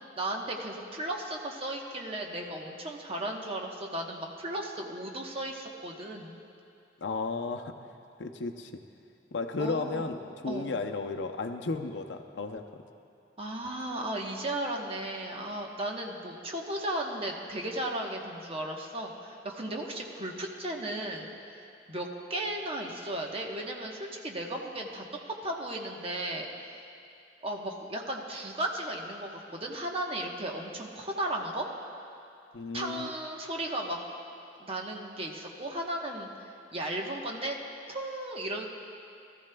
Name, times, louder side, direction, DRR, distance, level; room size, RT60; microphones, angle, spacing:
voice 1, 0.2-6.4 9.6-10.0 10.5-10.7 13.4-21.3 21.9-25.0 25.4-26.5 27.4-31.7 32.7-34.0 34.5-36.3 36.7-37.6 37.9-38.6, right 1 dB, 35° right, 0 dB, 1.0 m, -35 dB
voice 2, 7.0-7.8 8.2-8.8 9.3-12.8 32.5-33.1, left 3 dB, 80° left, 5 dB, 0.6 m, -34 dB
18.0 x 14.0 x 2.3 m, 2.6 s
head